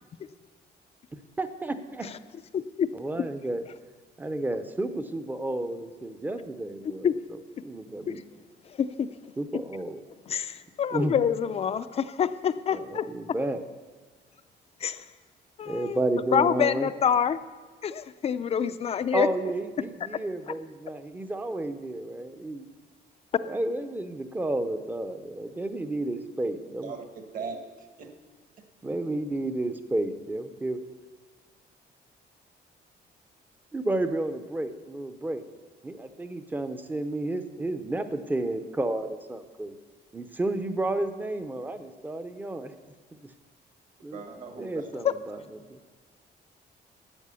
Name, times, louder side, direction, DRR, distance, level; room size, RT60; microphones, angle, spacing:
voice 1, 1.4-2.1 2.9-3.6 4.2-7.1 7.6-8.2 9.4-10.0 10.9-11.2 12.7-13.6 15.7-16.9 19.1-22.7 23.4-26.9 28.8-30.8 33.7-35.4 35.8-39.7 40.1-42.7 44.0-45.4 45.7-45.8, right 2 dB, 10° right, 9 dB, 0.6 m, -31 dB
voice 2, 2.5-2.9 7.0-7.1 8.1-8.2 8.8-9.1 10.3-13.1 14.8-15.0 15.6-16.0 16.3-17.4 17.8-19.3 45.0-45.1, left 8 dB, 35° left, 12 dB, 0.4 m, -26 dB
voice 3, 26.8-27.6 28.0-28.1 44.1-44.9, right 5 dB, 50° right, 5 dB, 1.5 m, -38 dB
12.5 x 9.0 x 6.9 m, 1.4 s
cardioid pair, 180°, 18 cm